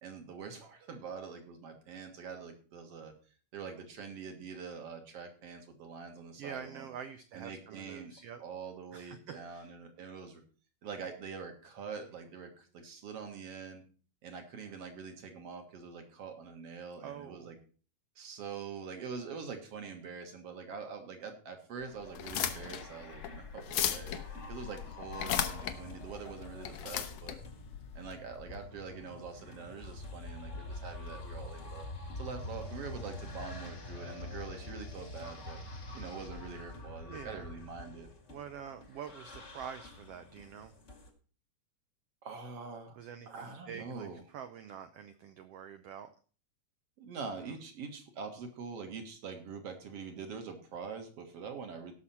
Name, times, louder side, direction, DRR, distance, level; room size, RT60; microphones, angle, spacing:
voice 1, 0.0-3.1 3.5-6.9 7.3-8.1 8.4-10.4 10.8-13.8 14.2-17.6 18.2-24.2 24.5-27.4 27.9-31.9 32.2-35.6 35.9-38.1 42.2-43.0 43.3-44.2 47.0-51.9, right 5 dB, 55° right, 5 dB, 2.4 m, -44 dB
voice 2, 6.4-8.4 8.9-9.7 17.0-17.5 37.1-37.5 38.3-40.7 43.0-46.1 47.4-47.6, right 8 dB, 90° right, 9 dB, 1.3 m, -46 dB
sound 1, 21.8-41.1, left 2 dB, 30° left, 1.5 m, -46 dB
sound 2, 22.1-28.6, left 10 dB, 70° left, 1.9 m, -36 dB
17.0 x 6.3 x 4.3 m, 0.38 s
omnidirectional pair, 3.7 m